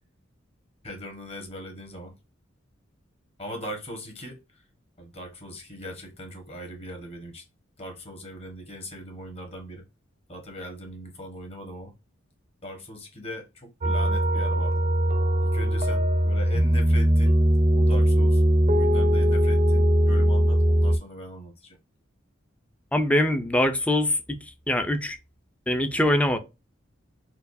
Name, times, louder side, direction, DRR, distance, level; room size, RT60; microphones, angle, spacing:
voice 1, 0.8-2.1 3.4-4.6 5.0-7.4 7.8-9.8 10.3-11.9 12.6-14.8 15.4-17.4 17.7-21.8, left 1 dB, 30° left, 1.3 m, -40 dB
sound 1, 13.8-21.0, equal, 35° right, 0.6 m, -20 dB
voice 2, 22.9-24.2 24.7-25.2 25.7-26.4, left 1 dB, 5° left, 0.5 m, -23 dB
4.5 x 2.3 x 2.6 m
head